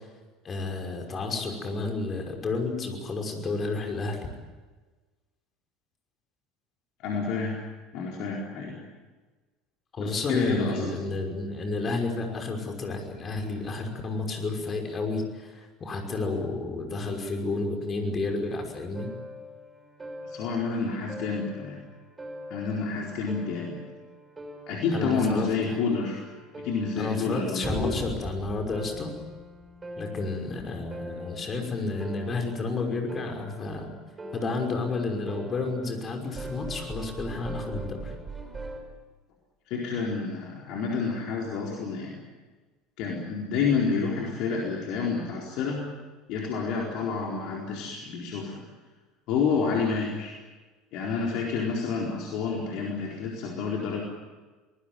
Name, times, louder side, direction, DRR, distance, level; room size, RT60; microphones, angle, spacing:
voice 1, 0.4-4.3 9.9-19.1 24.9-25.8 27.0-29.1 30.0-33.9 34.3-38.1, left 3 dB, 30° left, 3 dB, 5.7 m, -31 dB
voice 2, 7.0-7.6 7.9-8.8 10.0-11.1 20.2-21.8 22.5-23.8 24.7-26.2 26.5-28.0 39.7-42.2 43.0-45.9 46.3-48.6 49.3-50.3 50.9-54.0, left 5 dB, 55° left, -1 dB, 4.3 m, -29 dB
sound 1, 18.9-38.8, right 1 dB, 20° right, 5.4 m, -41 dB
25.0 x 20.0 x 9.4 m, 1.3 s
figure-of-eight pair, 70°, 0 cm